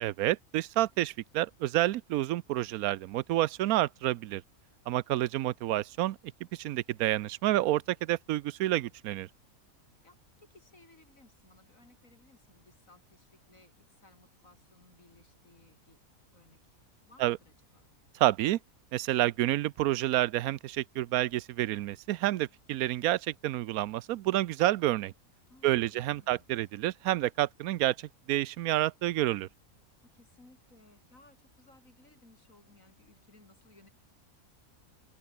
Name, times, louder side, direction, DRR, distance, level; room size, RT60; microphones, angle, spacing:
voice 1, 0.0-4.4 4.9-6.2 6.5-9.3 17.2-17.4 18.1-18.6 18.9-25.1 25.6-29.5, right 15 dB, 85° right, 1.1 m, -29 dB
voice 2, 10.0-16.0 16.3-16.8 17.0-17.9 25.5-26.7 30.1-33.9, left 2 dB, 65° left, 6.8 m, -61 dB
omnidirectional pair, 1.5 m